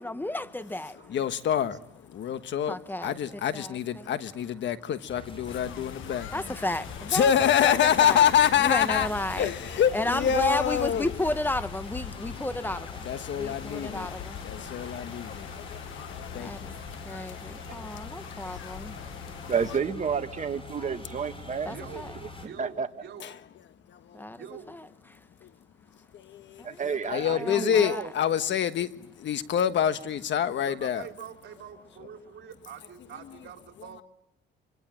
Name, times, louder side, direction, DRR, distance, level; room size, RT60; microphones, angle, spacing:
voice 1, 0.0-1.1 2.3-2.4 2.6-4.2 6.3-8.3 8.6-9.5 9.9-13.1 13.3-14.4 16.3-16.7 17.0-19.0 21.6-22.1 24.1-25.2 26.6-28.1, left 1 dB, 10° left, 1.2 m, -33 dB
voice 2, 1.1-1.8 2.1-2.8 3.0-6.3 7.1-9.1 9.4-11.1 13.0-14.1 14.4-16.7 18.9-19.1 23.2-23.3 23.9-24.2 25.4-25.5 26.1-26.6 27.0-28.9 29.2-31.0, left 9 dB, 65° left, 1.4 m, -26 dB
sound 1, 5.1-22.5, left 2 dB, 25° left, 6.0 m, -44 dB
sound 2, 5.5-19.8, left 11 dB, 80° left, 1.2 m, -42 dB
voice 3, 19.5-21.7 22.1-22.9 26.6-28.1, right 6 dB, 40° right, 1.9 m, -31 dB
voice 4, 21.7-22.1 22.4-23.3 24.4-24.7 27.4-27.8 30.6-34.0, right 8 dB, 65° right, 4.2 m, -43 dB
26.0 x 24.5 x 7.6 m
cardioid pair, 90°, 20 cm